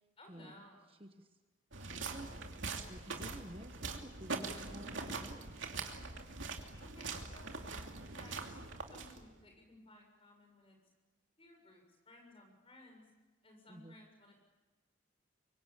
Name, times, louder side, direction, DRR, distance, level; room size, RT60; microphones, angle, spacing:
voice 1, 0.2-0.9 6.8-8.6 8.9-10.8 11.4-13.1 13.4-14.4, left 1 dB, 25° left, 3 dB, 6.8 m, -59 dB
sound 1, 1.7-9.4, right 4 dB, 70° right, 2.7 m, -43 dB
voice 2, 1.8-2.5 2.9-5.4 13.7-13.9, right 1 dB, 25° right, 7 dB, 1.2 m, -51 dB
24.5 x 24.0 x 8.7 m, 1.2 s
head